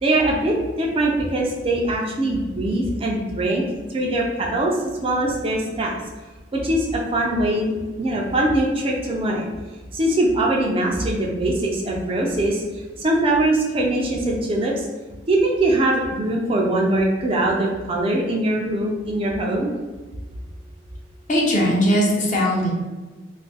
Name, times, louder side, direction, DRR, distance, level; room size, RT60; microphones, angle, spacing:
voice 1, 0.0-3.6 3.9-4.8 5.0-6.0 6.5-9.5 9.9-12.6 13.0-14.9 15.3-19.7, right 1 dB, 30° right, -1 dB, 0.4 m, -22 dB
voice 2, 21.3-22.7, equal, 40° left, -2 dB, 0.7 m, -19 dB
2.6 x 2.4 x 3.9 m, 1.2 s
head